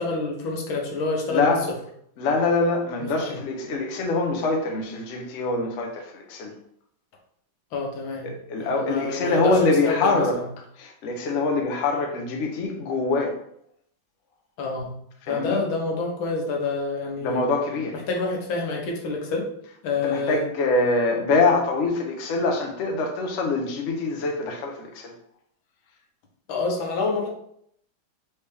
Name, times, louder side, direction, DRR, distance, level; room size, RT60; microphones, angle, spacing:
voice 1, 0.0-1.5 3.0-3.4 7.7-8.3 8.6-10.5 14.6-14.9 15.3-17.4 18.1-19.5 19.8-20.4 26.5-27.3, left 3 dB, 90° left, 0 dB, 1.7 m, -27 dB
voice 2, 1.3-1.6 2.2-6.5 8.2-10.3 10.8-13.3 15.3-15.6 17.2-18.0 20.0-25.1, left 3 dB, 55° left, 2 dB, 0.8 m, -24 dB
4.3 x 3.3 x 3.3 m, 0.69 s
omnidirectional pair, 2.1 m